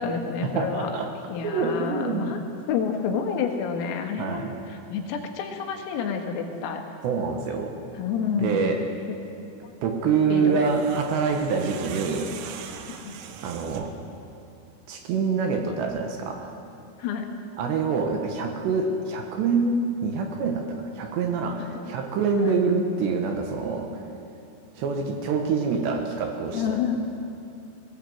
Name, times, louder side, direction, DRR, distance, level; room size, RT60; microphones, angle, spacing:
voice 1, 0.0-0.9 1.3-2.4 2.7-6.8 8.0-8.7 10.3-10.7 13.0-13.2 17.0-17.3 21.8-22.0 22.4-22.5 26.5-27.0, left 6 dB, 85° left, 3 dB, 4.4 m, -29 dB
voice 2, 0.6-1.1 1.4-2.3 4.2-4.5 7.0-7.7 8.4-8.8 9.8-12.4 13.4-13.9 14.9-16.5 17.6-24.0 24.8-26.8, right 5 dB, 70° right, 4 dB, 3.1 m, -26 dB
sound 1, 10.4-14.1, right 8 dB, 85° right, 3.7 m, -40 dB
19.0 x 17.5 x 7.8 m, 2.7 s
omnidirectional pair, 5.9 m